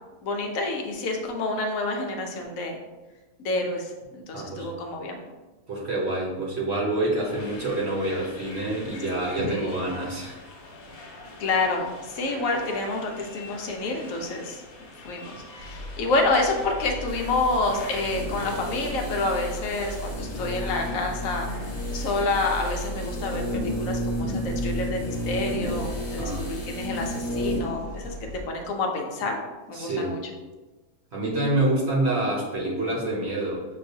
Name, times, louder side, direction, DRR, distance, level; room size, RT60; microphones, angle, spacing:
voice 1, 0.2-2.8 3.4-5.2 9.4-9.9 11.4-14.6 15.0-21.5 21.9-29.4 29.7-30.2, left 2 dB, 70° left, 2 dB, 1.0 m, -28 dB
voice 2, 4.3-4.7 5.7-10.4 26.1-26.4 29.7-30.1 31.1-33.7, right 2 dB, 50° right, -3 dB, 1.0 m, -27 dB
sound 1, 7.2-22.9, left 2 dB, 85° left, 1.3 m, -45 dB
sound 2, 15.6-28.4, equal, 70° right, 0.4 m, -37 dB
sound 3, 17.1-27.7 28.0-28.1, equal, 35° left, 0.7 m, -33 dB
6.6 x 2.4 x 2.6 m, 1.2 s
omnidirectional pair, 1.5 m